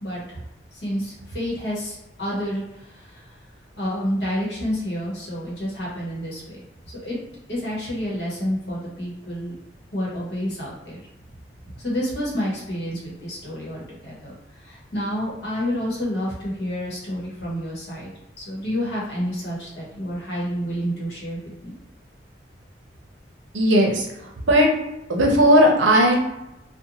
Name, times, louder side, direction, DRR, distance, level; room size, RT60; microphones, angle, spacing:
voice 1, 0.0-0.4 0.7-3.3 3.8-6.6 6.9-7.2 7.5-9.5 9.9-11.0 11.7-14.3 14.6-18.1 18.4-21.7, equal, 60° left, -5 dB, 1.0 m, -29 dB
voice 2, 23.5-24.1 24.5-24.7 25.1-26.2, equal, 85° right, 0 dB, 0.6 m, -16 dB
2.5 x 2.1 x 2.9 m, 0.92 s
head